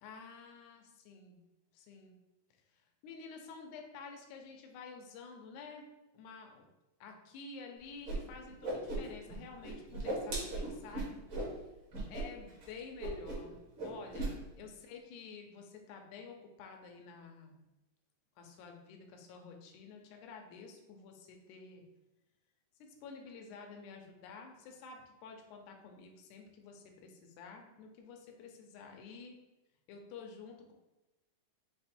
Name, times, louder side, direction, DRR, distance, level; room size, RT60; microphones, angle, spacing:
voice 1, 0.0-1.4 1.7-2.2 3.0-5.9 6.1-6.7 7.0-11.1 12.1-17.6 18.4-21.8 22.8-29.4 29.9-30.7, left 5 dB, 75° left, 3 dB, 1.8 m, -50 dB
Whoosh swoosh swish, 8.1-8.2 8.4-9.4 9.6-11.5 11.9-12.2 12.5-12.7 13.0-13.5 13.8-14.3, right 2 dB, 60° right, 1.5 m, -37 dB
5.9 x 2.0 x 4.2 m, 1.0 s
omnidirectional pair, 4.0 m